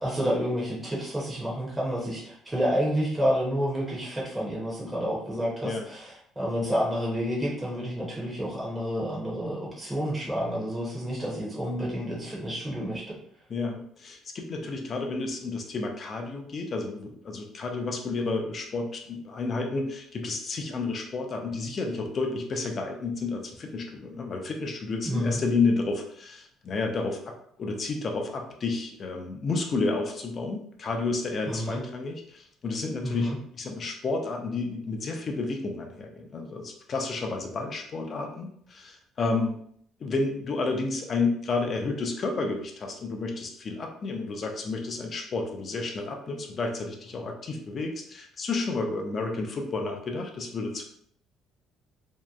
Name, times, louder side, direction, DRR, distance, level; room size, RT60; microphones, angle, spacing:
voice 1, 0.0-13.2 25.1-25.4 31.5-31.8 33.0-33.4, equal, 10° right, -5 dB, 0.6 m, -29 dB
voice 2, 13.5-39.6 40.0-50.8, left 3 dB, 35° left, 3 dB, 0.4 m, -31 dB
2.6 x 2.0 x 2.3 m, 0.65 s
cardioid pair, 145°, 0 cm